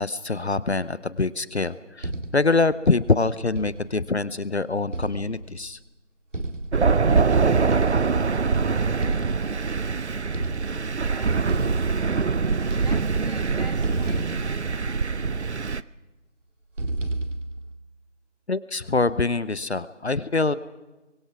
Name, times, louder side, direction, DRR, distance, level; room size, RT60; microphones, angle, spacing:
voice 1, 0.0-5.8 18.5-20.5, left 3 dB, 65° left, 17 dB, 0.9 m, -24 dB
sound 1, 2.0-2.6 3.6-4.1 4.9-5.7 6.3-7.1 7.7-8.3 9.0-9.8 10.3-11.0 11.5-12.3 12.6-13.5 13.8-15.3 16.8-17.7, right 2 dB, 85° right, 2.1 m, -33 dB
Thunder, 6.7-15.8, right 5 dB, 65° right, 0.7 m, -23 dB
voice 2, 11.1-12.1 12.7-15.5, equal, 35° right, 0 dB, 3.9 m, -44 dB
29.5 x 23.5 x 4.8 m, 1.1 s
figure-of-eight pair, 180°, 36 cm